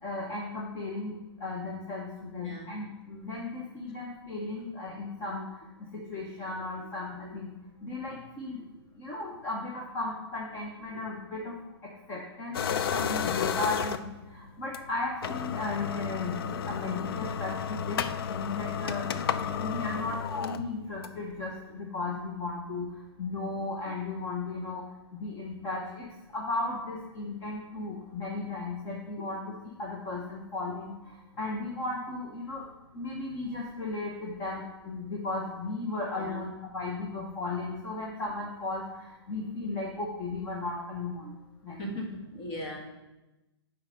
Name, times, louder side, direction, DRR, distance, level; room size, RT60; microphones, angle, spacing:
voice 1, 0.0-7.5 7.8-8.6 9.0-18.0 18.3-24.8 25.1-29.5 29.8-32.7 32.9-41.3 41.6-41.9 42.5-42.6, left 2 dB, 20° left, -3 dB, 1.1 m, -36 dB
voice 2, 5.9-6.3 6.7-6.9 7.2-7.4 8.0-8.1 8.6-8.7 10.9-11.0 29.2-29.3 36.1-36.4 41.8-42.8, left 1 dB, 35° left, 0 dB, 2.0 m, -41 dB
sound 1, 12.5-14.2 14.7-14.8 15.1-21.3, left 7 dB, 60° left, 0.5 m, -32 dB
8.1 x 4.8 x 5.3 m, 1.0 s
hypercardioid pair, 145°, 14 cm